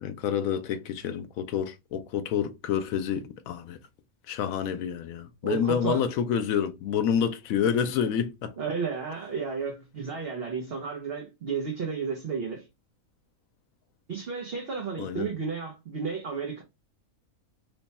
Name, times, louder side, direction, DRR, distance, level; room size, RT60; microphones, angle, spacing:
voice 1, 0.0-3.8 4.3-8.5 15.0-15.3, left 8 dB, 75° left, 1.0 m, -28 dB
voice 2, 5.4-6.0 8.6-12.7 14.1-16.6, right 5 dB, 50° right, 0.9 m, -32 dB
3.1 x 2.2 x 4.0 m
omnidirectional pair, 1.5 m